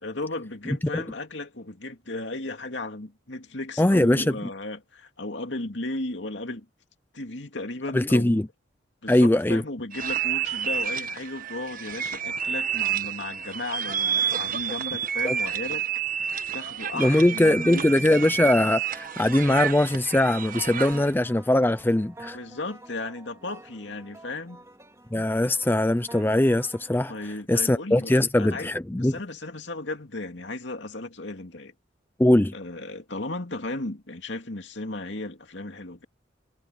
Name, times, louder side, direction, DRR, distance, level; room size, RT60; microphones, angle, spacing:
voice 1, 0.0-6.7 7.1-8.5 9.0-15.8 16.5-18.0 22.3-24.6 27.1-28.7 28.9-31.7 32.5-36.1, left 2 dB, 70° left, 2.5 m, -35 dB
voice 2, 3.8-4.4 7.9-8.5 9.1-9.6 15.2-15.3 17.0-22.4 25.1-27.1 27.5-29.2 32.2-32.5, left 1 dB, 10° left, 0.5 m, -21 dB
sound 1, 9.9-21.1, right 8 dB, 45° right, 1.3 m, -30 dB
sound 2, 18.9-27.3, right 1 dB, 15° right, 3.0 m, -48 dB
head